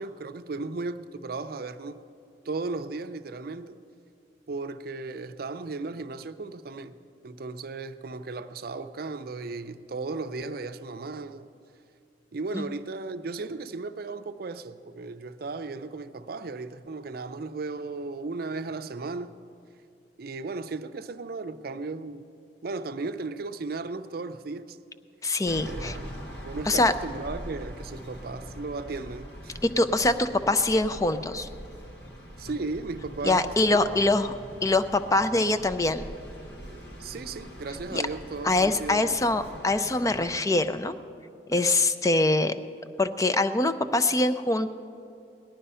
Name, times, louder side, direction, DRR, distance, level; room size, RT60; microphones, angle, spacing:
voice 1, 0.0-2.0 2.4-3.8 4.5-7.0 7.2-11.5 12.3-19.4 20.2-22.3 22.6-24.8 25.6-26.2 26.4-29.6 32.4-34.1 34.4-34.5 37.0-39.2, right 3 dB, 55° right, 0.5 m, -35 dB
voice 2, 25.2-26.0 26.7-26.9 29.6-31.5 33.2-34.3 34.6-36.1 37.9-38.0 38.4-40.9 41.5-42.5 43.0-44.7, left 2 dB, 20° left, 0.5 m, -24 dB
sound 1, 25.5-40.4, equal, 70° left, 1.5 m, -42 dB
18.0 x 11.5 x 5.6 m
head